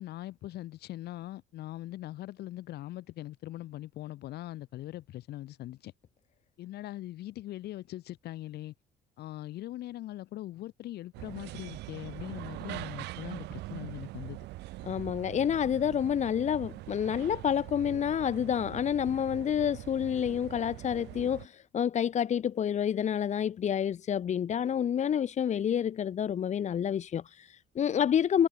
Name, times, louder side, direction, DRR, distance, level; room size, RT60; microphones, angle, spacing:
voice 1, 0.0-5.9 6.6-8.7 9.2-14.4, left 15 dB, 75° left, 5.8 m, -41 dB
sound 1, 11.1-21.5, right 18 dB, 85° right, 2.1 m, -43 dB
voice 2, 14.8-28.5, left 9 dB, 45° left, 1.1 m, -29 dB
cardioid pair, 110°, 17 cm